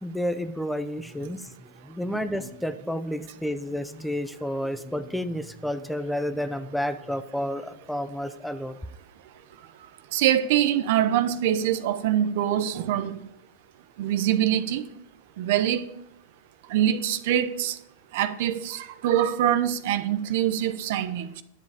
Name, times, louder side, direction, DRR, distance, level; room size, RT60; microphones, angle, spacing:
voice 1, 0.0-8.8, equal, ahead, 0.6 m, -31 dB
voice 2, 10.1-13.2 14.0-14.8 15.4-15.9 16.7-17.8 18.1-21.4, right 11 dB, 65° right, 0.8 m, -24 dB
10.5 x 7.4 x 5.1 m
supercardioid pair, 130°, 0 cm